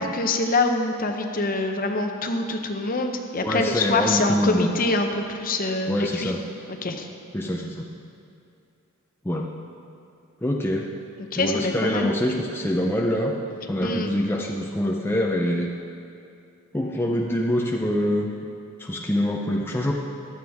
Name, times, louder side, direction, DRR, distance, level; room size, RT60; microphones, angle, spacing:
voice 1, 0.0-6.3 6.8-7.1 11.2-12.1 13.8-14.1, left 2 dB, 40° left, 5 dB, 0.8 m, -25 dB
voice 2, 3.4-4.7 5.9-6.4 7.3-7.8 9.2-9.5 10.4-10.9 11.3-13.3 13.7-15.7 16.7-18.3 18.8-19.9, left 1 dB, 10° left, -1 dB, 0.6 m, -25 dB
15.0 x 11.5 x 3.6 m, 2.5 s
head